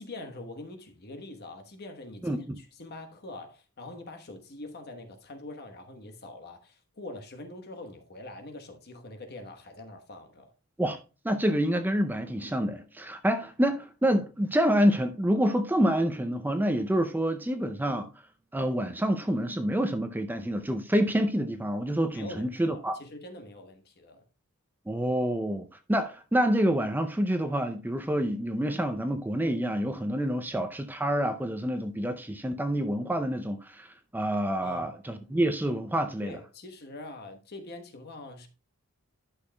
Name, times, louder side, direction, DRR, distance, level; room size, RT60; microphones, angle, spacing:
voice 1, 0.0-10.5 22.1-24.2 34.6-34.9 36.2-38.5, left 2 dB, 50° left, 1.2 m, -44 dB
voice 2, 2.2-2.6 10.8-11.0 11.2-18.1 18.5-23.0 24.9-36.4, equal, 10° right, 0.5 m, -27 dB
11.5 x 6.3 x 2.2 m
head